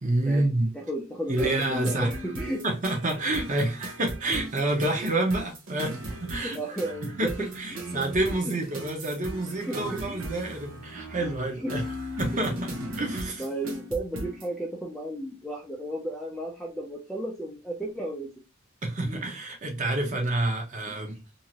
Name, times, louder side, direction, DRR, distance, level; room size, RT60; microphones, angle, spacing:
voice 1, 0.0-0.7 1.3-2.2 2.6-11.8 12.2-12.7 13.0-13.4 18.8-21.2, right 2 dB, 40° right, 0.8 m, -28 dB
voice 2, 0.7-2.6 5.0-5.1 6.4-7.3 7.7-8.0 8.4-8.5 9.6-10.3 11.6-11.7 13.4-18.3 19.0-19.3 20.9-21.0, right 1 dB, 5° left, 0.4 m, -34 dB
sound 1, 1.4-14.5, equal, 80° right, 0.8 m, -37 dB
2.7 x 2.5 x 2.8 m
head